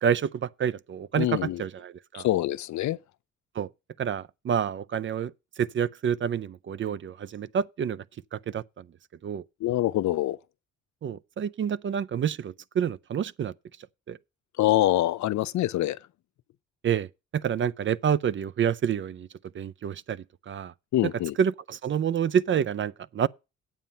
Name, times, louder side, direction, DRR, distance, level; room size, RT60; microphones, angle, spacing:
voice 1, 0.0-2.3 3.6-3.7 4.0-8.0 8.3-8.9 9.2-9.4 11.0-13.5 14.1-14.2 16.8-17.1 17.3-19.3 19.5-20.7 21.0-21.1 21.4-23.3, right 8 dB, 40° right, 0.5 m, -28 dB
voice 2, 1.1-1.6 2.1-3.0 9.6-10.4 14.6-16.0 20.9-21.3, left 14 dB, 70° left, 0.6 m, -25 dB
8.8 x 7.5 x 5.4 m
cardioid pair, 90°, 30 cm